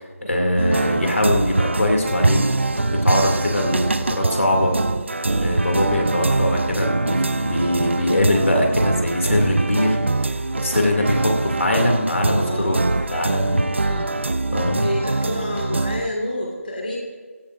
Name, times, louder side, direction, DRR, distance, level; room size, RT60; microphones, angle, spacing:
voice 1, 0.0-2.5 2.9-4.8 5.3-10.0 10.6-12.8 13.1-13.8 14.5-14.8, left 1 dB, 60° left, 1 dB, 2.7 m, -22 dB
sound 1, 0.6-16.1, right 2 dB, 50° right, 0.7 m, -23 dB
voice 2, 12.4-12.9 13.8-14.1 14.8-17.0, left 1 dB, 40° left, -2 dB, 2.2 m, -29 dB
17.5 x 16.5 x 2.6 m, 1.5 s
figure-of-eight pair, 175°, 8 cm